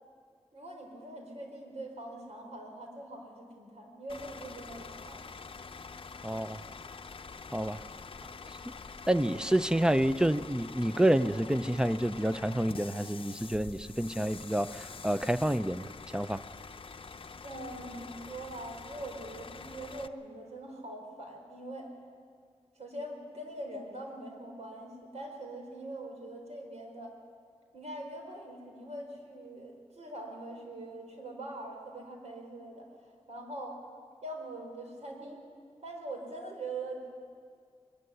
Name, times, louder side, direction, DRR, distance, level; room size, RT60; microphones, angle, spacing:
voice 1, 0.5-5.2 17.4-21.9 22.8-27.1 27.7-32.9 33.3-33.8 34.2-35.4 35.8-37.1, right 1 dB, 75° right, 2 dB, 4.3 m, -43 dB
Bus / Idling, 4.1-20.1, left 5 dB, 50° left, 0.7 m, -46 dB
voice 2, 6.2-6.6 7.5-7.8 8.6-8.7 9.1-15.9 16.1-16.4, right 1 dB, 5° right, 13 dB, 0.6 m, -28 dB
22.0 x 13.5 x 9.8 m, 2.1 s
wide cardioid pair, 75°, 11 cm